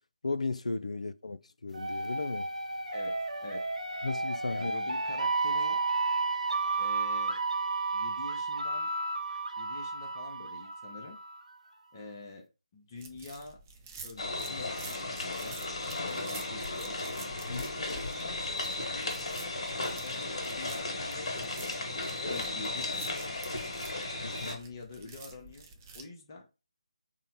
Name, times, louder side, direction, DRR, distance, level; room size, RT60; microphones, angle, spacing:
voice 1, 0.2-2.5 4.0-4.7 17.5-17.6 24.2-24.6, left 3 dB, 65° left, 0.4 m, -35 dB
sound 1, 1.7-11.4, right 3 dB, 85° right, 0.9 m, -32 dB
voice 2, 4.5-5.8 6.8-7.4 7.9-8.9 9.6-11.2 11.9-12.4 12.7-13.6 14.0-15.6 16.0-16.9 17.5-19.5 20.0-23.3 24.4-25.7 25.9-26.4, left 3 dB, 30° left, 0.8 m, -46 dB
sound 2, 12.9-26.0, right 5 dB, 20° right, 0.5 m, -50 dB
sound 3, 14.2-24.6, left 2 dB, 50° left, 1.3 m, -35 dB
3.7 x 2.1 x 4.3 m
figure-of-eight pair, 155°, 4 cm